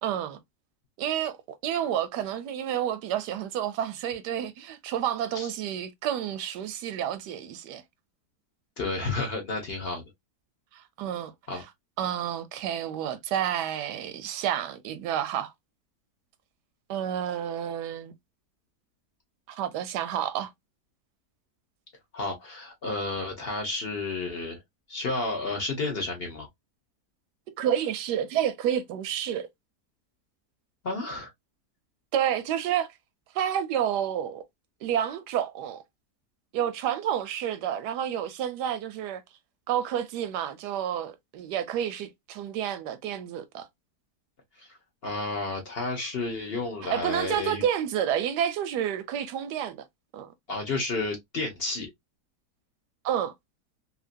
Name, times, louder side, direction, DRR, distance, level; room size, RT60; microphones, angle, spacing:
voice 1, 0.0-0.4 1.0-1.3 1.6-7.8 10.7-11.6 12.0-15.5 16.9-18.1 19.5-20.5 27.6-29.5 32.1-32.9 33.3-34.4 34.8-35.8 36.5-39.2 39.7-43.7 46.9-49.8 50.1-50.3 53.0-53.3, right 10 dB, 85° right, 1.2 m, -29 dB
voice 2, 8.8-10.0 11.5-11.6 22.1-24.6 24.9-26.5 30.8-31.3 44.6-44.8 45.0-47.6 50.5-51.9, left 3 dB, 45° left, 0.9 m, -31 dB
2.9 x 2.7 x 2.5 m
omnidirectional pair, 1.7 m